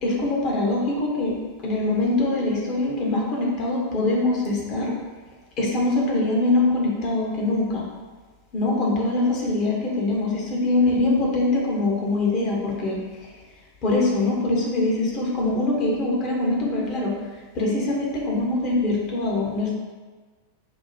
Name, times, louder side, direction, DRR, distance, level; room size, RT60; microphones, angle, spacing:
voice 1, 0.0-4.9 5.6-7.8 8.5-13.0 13.8-17.1 17.5-19.7, left 2 dB, 35° left, -2 dB, 0.8 m, -23 dB
4.6 x 2.1 x 2.7 m, 1.3 s
figure-of-eight pair, 90°, 0 cm